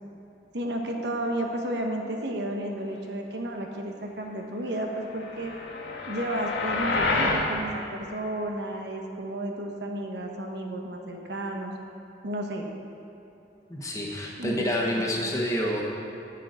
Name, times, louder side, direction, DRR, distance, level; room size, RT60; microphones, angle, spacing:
voice 1, 0.5-5.5 6.1-11.7 12.2-12.7 14.4-15.1, right 1 dB, 70° right, 2 dB, 1.2 m, -32 dB
sound 1, 5.2-7.5, left 3 dB, 85° left, 1.5 m, -28 dB
voice 2, 13.7-15.8, equal, 20° left, -2 dB, 1.3 m, -28 dB
10.5 x 6.0 x 8.0 m, 2.9 s
head